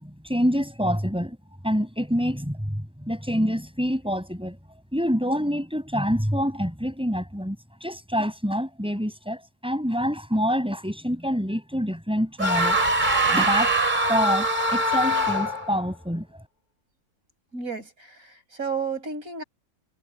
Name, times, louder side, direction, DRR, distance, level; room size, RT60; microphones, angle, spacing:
voice 1, 0.0-1.4 1.6-4.6 4.9-12.8 13.3-13.8 14.1-16.3, equal, 5° right, 7.0 m, -26 dB
sound 1, 12.4-15.7, right 1 dB, 35° right, 3.2 m, -22 dB
voice 2, 17.5-19.4, right 5 dB, 85° right, 6.0 m, -32 dB
omnidirectional pair, 1.4 m